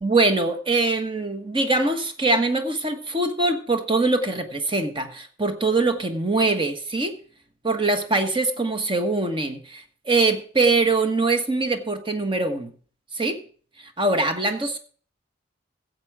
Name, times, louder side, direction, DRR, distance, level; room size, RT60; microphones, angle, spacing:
voice 1, 0.0-7.2 7.6-12.7 13.1-13.4 14.0-14.8, right 3 dB, 25° right, 7 dB, 1.2 m, -23 dB
15.0 x 7.7 x 4.9 m, 0.43 s
head